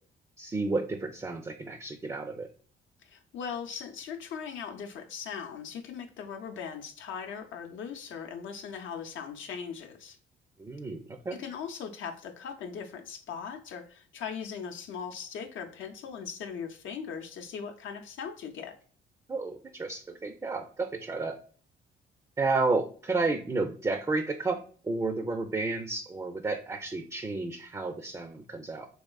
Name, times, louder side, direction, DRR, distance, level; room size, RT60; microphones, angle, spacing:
voice 1, 0.4-2.5 10.6-11.4 19.3-21.4 22.4-24.6 24.8-28.9, right 3 dB, 15° right, 6 dB, 0.4 m, -31 dB
voice 2, 3.0-10.2 11.4-18.7, left 7 dB, 75° left, 4 dB, 0.5 m, -39 dB
3.6 x 3.0 x 2.3 m, 0.43 s
cardioid pair, 90°, 20 cm